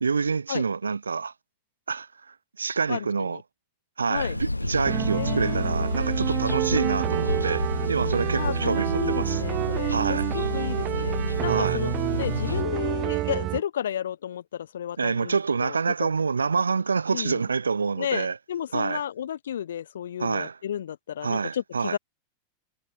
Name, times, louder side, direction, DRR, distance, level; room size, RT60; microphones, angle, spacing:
voice 1, 0.0-1.3 1.9-3.4 4.0-9.4 9.9-10.3 11.4-11.8 15.0-18.4 18.7-19.0 20.2-20.6 21.2-22.0, right 5 dB, 75° right, 1.4 m, -27 dB
voice 2, 2.9-3.4 4.1-4.4 5.1-5.6 6.7-6.9 8.3-11.2 11.4-11.9 12.2-16.1 17.1-17.4 18.0-22.0, left 9 dB, 65° left, 0.5 m, -32 dB
sound 1, 4.1-12.6, left 2 dB, 85° left, 2.0 m, -30 dB
sound 2, 4.9-13.6, right 17 dB, 35° right, 0.6 m, -29 dB
figure-of-eight pair, 90°, 0 cm